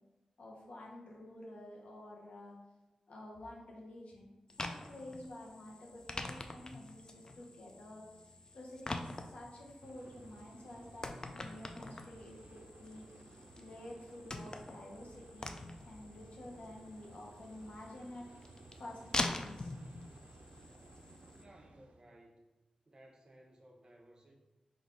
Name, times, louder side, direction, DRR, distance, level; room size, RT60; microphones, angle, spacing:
voice 1, 0.4-2.5 3.1-4.3 4.6-8.2 8.5-19.7, left 1 dB, 80° left, -2 dB, 1.0 m, -50 dB
sound 1, 4.5-21.4, left 2 dB, 35° left, 0.4 m, -45 dB
sound 2, 9.8-22.0, right 2 dB, 85° right, 0.4 m, -58 dB
voice 2, 21.3-22.4 22.9-24.4, right 1 dB, 40° right, 1 dB, 0.7 m, -59 dB
4.0 x 2.6 x 4.6 m, 1.1 s
wide cardioid pair, 85°, 2 cm